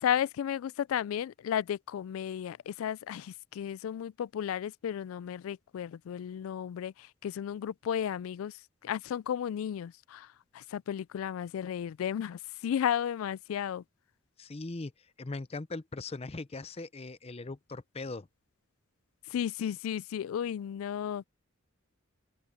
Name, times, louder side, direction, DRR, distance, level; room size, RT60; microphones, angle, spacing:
voice 1, 0.0-13.8 19.3-21.3, left 9 dB, 85° left, 0.3 m, -34 dB
voice 2, 14.4-18.3, left 3 dB, 30° left, 0.6 m, -40 dB
open air
head